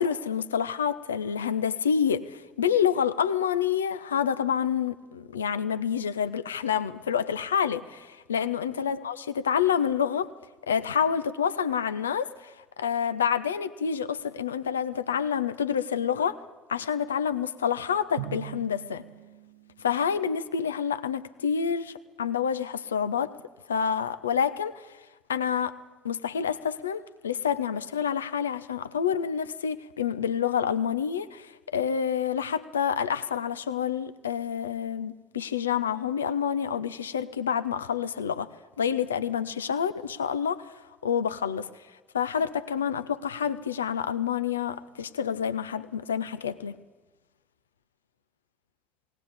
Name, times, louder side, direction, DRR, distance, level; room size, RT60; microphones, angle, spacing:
voice 1, 0.0-10.3 10.7-16.4 16.7-19.0 19.8-23.3 23.7-24.9 25.3-25.8 26.0-38.5 38.8-41.7 42.1-46.8, left 7 dB, 85° left, 0.6 m, -28 dB
Drum, 18.2-20.3, right 11 dB, 80° right, 0.8 m, -41 dB
20.0 x 18.0 x 8.7 m
figure-of-eight pair, 55°, 0 cm